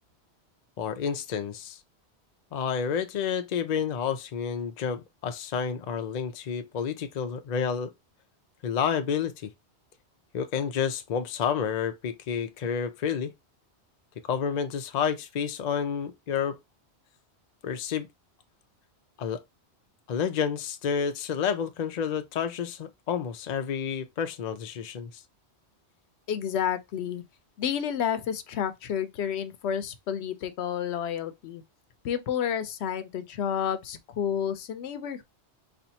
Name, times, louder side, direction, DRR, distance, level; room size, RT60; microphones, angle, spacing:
voice 1, 0.8-1.8 2.5-7.9 8.6-9.5 10.3-13.3 14.3-16.6 17.6-18.1 19.2-19.4 20.1-25.1, left 7 dB, 50° left, 0.5 m, -30 dB
voice 2, 26.3-27.2 27.6-31.6 32.0-35.2, left 8 dB, 75° left, 0.8 m, -30 dB
4.3 x 2.5 x 2.7 m
omnidirectional pair, 1.2 m